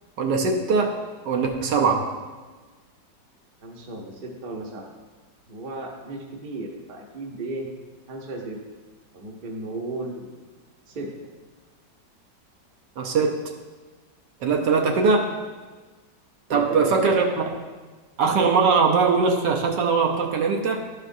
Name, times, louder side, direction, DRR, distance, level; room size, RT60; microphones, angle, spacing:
voice 1, 0.2-0.9 1.3-2.0 13.0-13.3 14.4-15.3 16.5-17.2 18.2-20.8, right 4 dB, 75° right, 1 dB, 1.4 m, -21 dB
voice 2, 3.6-4.9 5.5-7.7 8.1-8.6 9.1-10.3 10.9-11.1 16.5-17.3, right 2 dB, 40° right, 0 dB, 0.8 m, -35 dB
11.5 x 5.0 x 2.6 m, 1.3 s
omnidirectional pair, 1.9 m